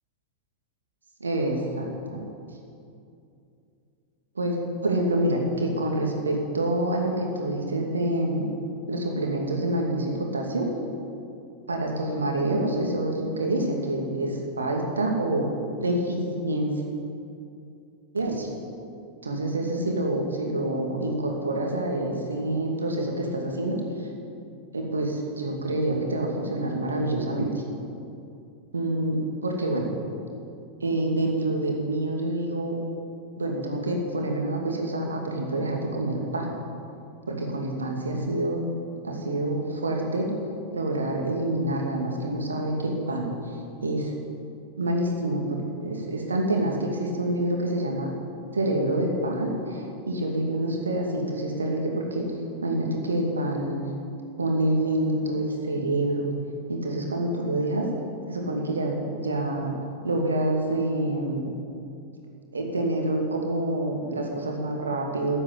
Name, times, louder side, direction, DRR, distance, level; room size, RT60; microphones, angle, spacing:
voice 1, 1.2-1.6 2.1-2.2 4.4-8.5 8.9-10.7 11.7-15.5 15.8-16.8 18.1-18.5 19.2-23.8 24.7-27.6 28.7-29.9 30.8-32.7 33.4-36.5 37.3-38.6 39.0-40.3 40.7-43.3 43.8-44.1 44.8-48.1 48.5-53.8 54.4-56.3 56.7-57.9 58.3-59.0 59.2-59.7 60.0-61.5 62.5-65.4, right 1 dB, 75° right, 1 dB, 2.6 m, -27 dB
13.5 x 9.9 x 8.8 m, 2.6 s
figure-of-eight pair, 90°, 0 cm